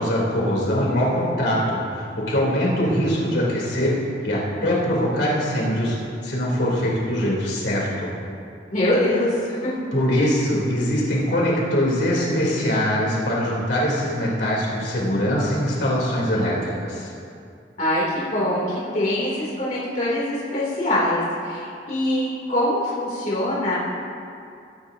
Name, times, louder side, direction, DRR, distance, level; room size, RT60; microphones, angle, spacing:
voice 1, 0.0-4.0 4.2-6.0 6.2-8.1 9.9-17.1, equal, 80° left, -5 dB, 3.5 m, -22 dB
voice 2, 8.7-9.7 17.8-23.7, left 1 dB, 45° left, -8 dB, 3.0 m, -23 dB
21.5 x 10.5 x 2.8 m, 2.5 s
head